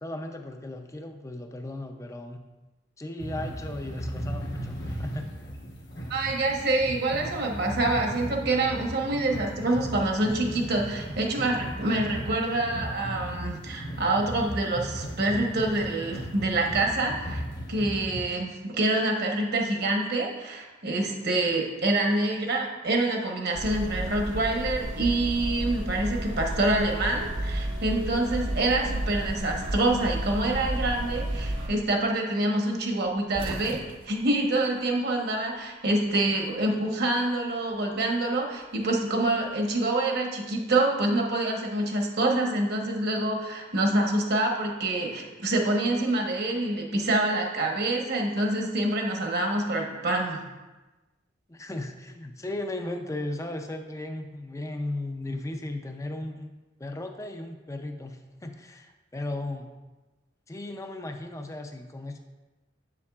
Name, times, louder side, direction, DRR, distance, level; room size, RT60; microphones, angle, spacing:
voice 1, 0.0-2.4 3.0-5.3 51.5-56.5 56.8-59.7 60.5-62.2, left 2 dB, 15° left, 5 dB, 0.5 m, -36 dB
sound 1, 3.2-18.2, equal, 65° left, 1.1 m, -36 dB
voice 2, 6.1-17.4 17.7-33.8 34.0-50.4, right 2 dB, 55° right, 1 dB, 1.1 m, -26 dB
sound 2, 23.5-31.7, right 1 dB, 90° right, 1.3 m, -32 dB
sound 3, 33.0-35.6 35.8-36.9 38.1-39.6, right 1 dB, 30° right, 0.7 m, -42 dB
7.5 x 7.1 x 2.4 m, 1.2 s
head